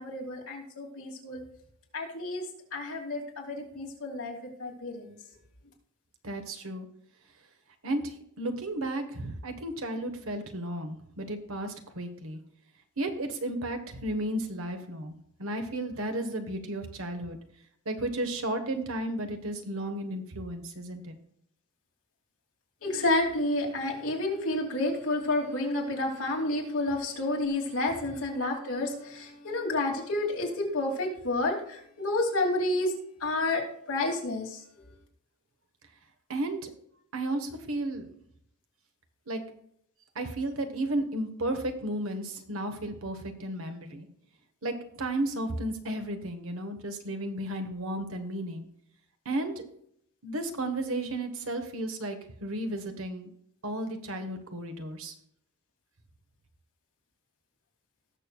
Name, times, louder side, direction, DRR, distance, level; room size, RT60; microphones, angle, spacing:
voice 1, 0.0-1.4 1.9-2.4 2.7-5.1 22.8-32.9 33.2-33.6 33.9-34.6, left 2 dB, 75° left, -1 dB, 2.8 m, -30 dB
voice 2, 6.2-6.9 7.8-12.4 13.0-15.1 15.4-17.4 17.8-21.2 36.3-36.7 37.1-38.1 39.3-39.4 40.1-44.1 44.6-48.7 49.2-49.6 50.2-53.3 53.6-55.1, right 1 dB, 65° right, 6 dB, 1.4 m, -33 dB
18.5 x 6.7 x 2.4 m, 0.70 s
head